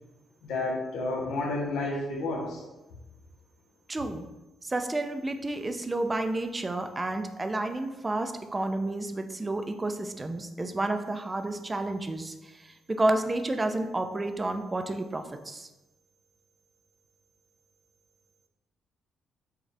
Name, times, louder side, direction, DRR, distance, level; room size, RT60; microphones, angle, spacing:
voice 1, 0.4-2.6, left 2 dB, 85° left, -3 dB, 1.0 m, -31 dB
voice 2, 3.9-4.2 4.6-15.7, right 2 dB, 20° right, 7 dB, 0.4 m, -30 dB
6.3 x 2.4 x 3.3 m, 1.0 s
cardioid pair, 90°, 0 cm